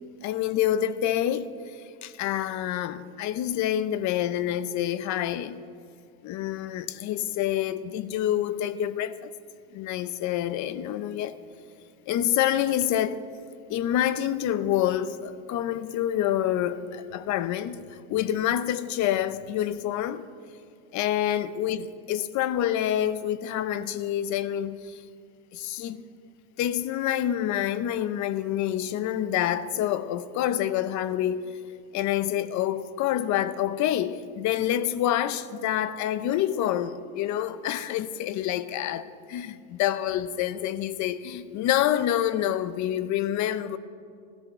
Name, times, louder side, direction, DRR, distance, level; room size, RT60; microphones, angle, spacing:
voice 1, 0.2-5.6 6.2-9.3 9.7-11.3 12.1-13.2 13.7-20.3 20.9-25.0 25.5-26.0 26.6-31.4 31.9-43.8, left 11 dB, 50° left, 0.7 m, -27 dB
15.0 x 13.5 x 5.6 m
cardioid pair, 135°, 37 cm